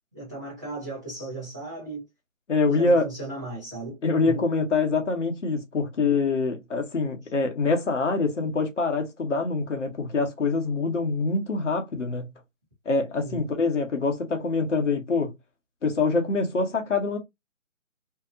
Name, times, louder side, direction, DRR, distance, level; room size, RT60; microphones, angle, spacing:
voice 1, 0.1-2.0 2.6-4.0 4.3-4.5 13.2-13.5, right 2 dB, 15° right, 0.7 m, -36 dB
voice 2, 2.5-3.1 4.0-12.3 12.9-15.3 15.8-17.2, left 3 dB, 60° left, 0.9 m, -25 dB
2.7 x 2.2 x 2.5 m
figure-of-eight pair, 150°, 41 cm